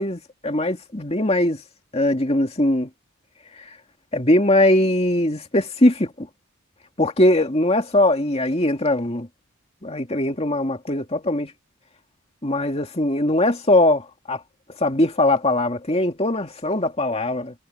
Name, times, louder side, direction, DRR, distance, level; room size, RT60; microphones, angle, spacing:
voice 1, 0.0-1.6 1.9-2.9 4.1-6.3 7.0-9.3 9.8-11.5 12.4-14.4 14.8-17.5, left 1 dB, 30° left, 2.4 m, -20 dB
head